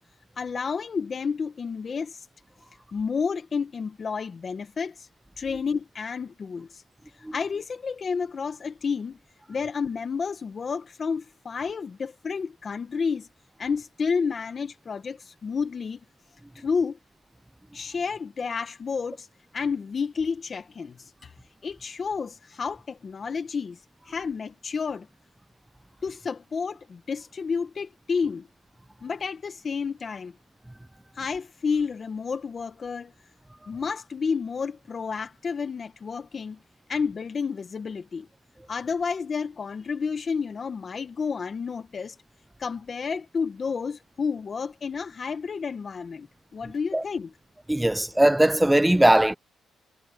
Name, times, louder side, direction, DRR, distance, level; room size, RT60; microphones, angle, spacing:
voice 1, 0.4-2.2 2.9-5.1 5.4-6.8 7.3-9.2 9.5-13.3 13.6-16.0 16.5-17.0 17.7-19.3 19.5-21.3 21.6-23.8 24.0-25.1 26.0-28.5 29.0-30.3 31.1-33.1 33.7-36.6 36.9-38.3 38.7-42.2 42.6-47.3, left 5 dB, 40° left, 1.5 m, -30 dB
voice 2, 47.7-49.3, right 1 dB, 5° right, 0.6 m, -19 dB
cardioid pair, 90°, 0 cm